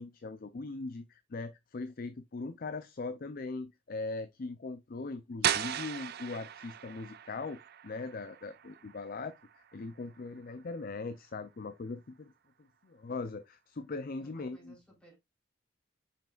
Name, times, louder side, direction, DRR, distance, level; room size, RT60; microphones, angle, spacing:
voice 1, 0.0-12.3 12.8-14.7, left 3 dB, 50° left, 0.5 m, -40 dB
sound 1, 5.4-11.1, right 10 dB, 55° right, 0.5 m, -38 dB
voice 2, 14.2-15.1, right 2 dB, 5° left, 3.9 m, -59 dB
7.4 x 5.7 x 2.4 m
head